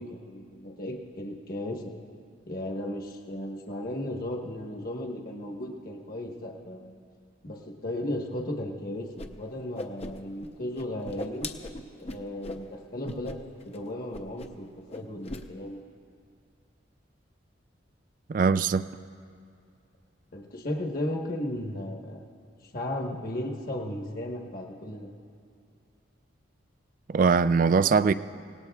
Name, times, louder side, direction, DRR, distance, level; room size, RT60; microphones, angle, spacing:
voice 1, 0.0-1.9 2.5-7.0 7.4-11.5 12.0-13.4 13.6-15.8 20.3-22.2 22.6-25.1, left 1 dB, 50° left, 0 dB, 1.3 m, -35 dB
Whoosh swoosh swish, 9.2-9.3 9.6-10.5 10.7-12.6 13.0-13.4 13.6-13.8 14.1-14.6 14.9-15.4, left 2 dB, 35° left, 0.7 m, -39 dB
voice 2, 18.3-18.9 27.1-28.1, right 5 dB, 45° right, 14 dB, 0.3 m, -21 dB
26.0 x 18.5 x 2.4 m, 2.4 s
head